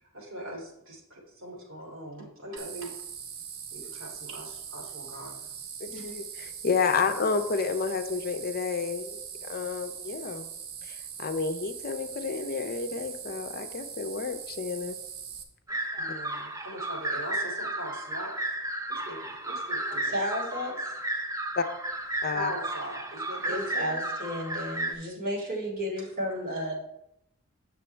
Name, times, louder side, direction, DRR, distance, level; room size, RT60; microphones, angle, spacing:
voice 1, 0.0-2.9 3.7-5.5 16.0-18.3 18.9-20.1 22.3-24.0, right 1 dB, 65° right, -2 dB, 2.6 m, -40 dB
sound 1, 2.6-15.4, right 7 dB, 90° right, 1.0 m, -41 dB
voice 2, 5.8-10.5 10.8-15.0 21.6-21.7 22.2-22.5, left 5 dB, 45° left, 9 dB, 0.6 m, -30 dB
sound 2, 15.7-24.9, right 1 dB, 15° right, 0.7 m, -33 dB
voice 3, 20.0-20.8 23.4-26.7, equal, 45° right, -4 dB, 3.0 m, -33 dB
8.0 x 6.9 x 3.3 m, 0.81 s
head